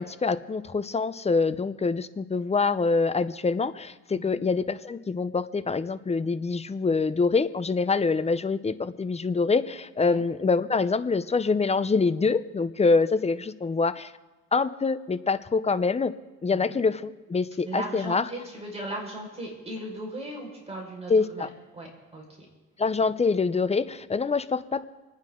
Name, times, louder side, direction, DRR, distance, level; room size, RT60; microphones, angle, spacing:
voice 1, 0.0-14.1 14.5-16.1 16.4-18.2 21.1-21.5 22.8-24.8, left 4 dB, 20° left, 13 dB, 0.6 m, -25 dB
voice 2, 17.6-22.2, right 1 dB, 20° right, -1 dB, 5.0 m, -37 dB
27.5 x 9.6 x 3.8 m, 1.3 s
cardioid pair, 90°, 30 cm